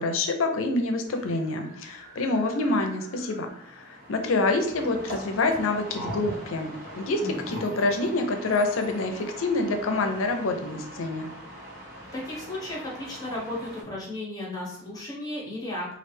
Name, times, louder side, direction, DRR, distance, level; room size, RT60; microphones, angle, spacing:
voice 1, 0.0-11.3, left 2 dB, 90° left, 5 dB, 0.5 m, -27 dB
sound 1, 1.1-13.8, equal, 50° right, 1.2 m, -42 dB
voice 2, 12.1-16.0, left 1 dB, 20° left, -4 dB, 1.0 m, -34 dB
3.2 x 2.4 x 3.2 m, 0.66 s
head